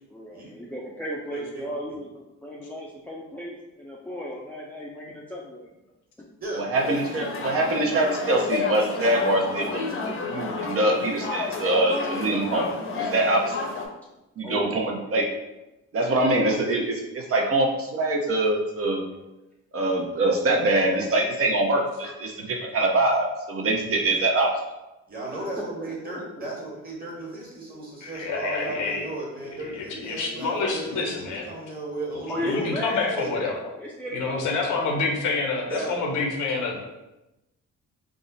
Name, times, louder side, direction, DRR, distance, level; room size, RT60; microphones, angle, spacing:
voice 1, 0.1-5.7 6.2-6.3 14.4-14.7 25.3-25.5 25.8-26.5 32.3-34.5, equal, 5° left, -4 dB, 0.5 m, -35 dB
voice 2, 1.3-1.7 6.4-6.6 25.1-32.7 33.2-33.3 35.7-36.0, right 2 dB, 30° right, -3 dB, 1.3 m, -35 dB
voice 3, 6.6-9.9 10.3-13.6 14.4-15.3 15.9-19.0 19.7-24.5, right 2 dB, 50° right, 1 dB, 0.7 m, -24 dB
sound 1, 6.7-13.9, left 4 dB, 45° left, 0.7 m, -31 dB
voice 4, 28.0-29.0 29.6-31.5 32.4-33.6 34.1-36.8, left 3 dB, 80° left, 1 dB, 0.9 m, -27 dB
3.5 x 2.0 x 4.0 m, 0.98 s
cardioid pair, 90°, 30 cm